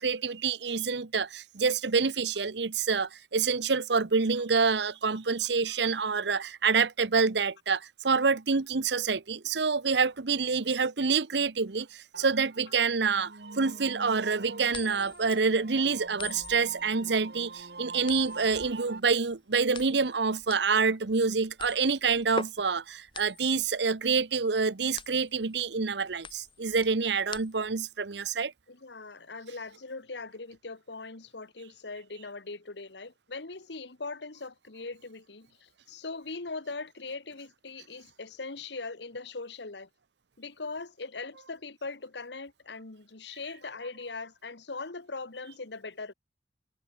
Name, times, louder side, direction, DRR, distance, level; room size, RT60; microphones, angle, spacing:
voice 1, 0.0-28.5, right 5 dB, 85° right, 0.9 m, -27 dB
sound 1, 12.1-19.0, right 3 dB, 65° right, 1.3 m, -44 dB
sound 2, 14.7-27.9, left 4 dB, 30° left, 3.1 m, -44 dB
voice 2, 28.7-39.9 40.4-46.1, left 3 dB, 85° left, 1.5 m, -40 dB
head